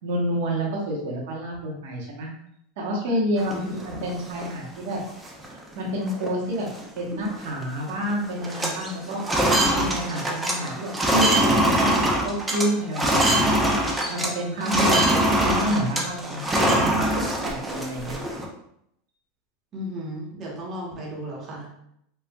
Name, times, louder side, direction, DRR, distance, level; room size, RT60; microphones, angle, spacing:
voice 1, 0.0-2.3 2.8-5.0 5.5-6.7 7.0-9.2 9.6-11.9 12.2-13.6 14.1-14.9 15.2-18.2, equal, 75° right, -2 dB, 1.2 m, -29 dB
voice 2, 3.3-3.7 14.6-15.1 19.7-21.7, right 1 dB, 30° right, -3 dB, 1.1 m, -33 dB
sound 1, 3.4-4.5 4.9-5.0 5.3-5.6 6.1-6.3 6.6-7.6 7.9-8.1 8.4-14.3 14.6-18.5, right 1 dB, 10° right, 0.6 m, -23 dB
4.5 x 2.4 x 2.3 m, 0.74 s
supercardioid pair, 140°, 0 cm